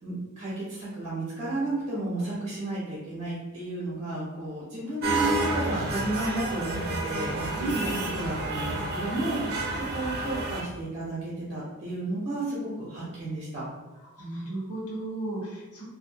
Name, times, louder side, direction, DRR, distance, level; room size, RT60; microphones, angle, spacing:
voice 1, 0.0-13.7, right 1 dB, 30° right, -8 dB, 1.0 m, -32 dB
sound 1, 5.0-10.6, right 2 dB, 45° right, 0.6 m, -30 dB
voice 2, 7.6-8.2 14.2-15.8, right 2 dB, 80° left, -5 dB, 1.2 m, -34 dB
3.4 x 2.6 x 2.7 m, 1.1 s
head